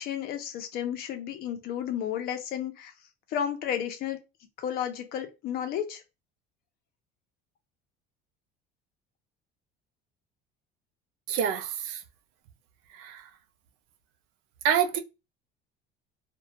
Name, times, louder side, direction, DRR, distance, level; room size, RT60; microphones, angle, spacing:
voice 1, 0.0-2.9 3.3-4.2 4.6-6.0, left 9 dB, 50° left, 0.6 m, -32 dB
voice 2, 11.3-12.0 12.9-13.3 14.6-15.0, right 8 dB, 75° right, 0.5 m, -27 dB
2.2 x 2.2 x 2.7 m
cardioid pair, 145°, 20 cm